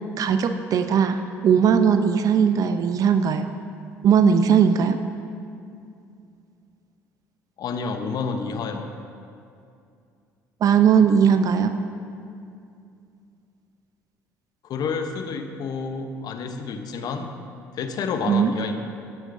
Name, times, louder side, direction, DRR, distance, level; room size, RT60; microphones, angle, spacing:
voice 1, 0.2-3.5 4.0-5.0 10.6-11.7 18.3-18.5, right 7 dB, 50° right, 8 dB, 0.5 m, -19 dB
voice 2, 7.6-8.9 14.6-17.3 17.7-18.8, left 5 dB, 55° left, 6 dB, 0.8 m, -29 dB
17.5 x 6.3 x 2.6 m, 2.5 s
hypercardioid pair, 55°, 8 cm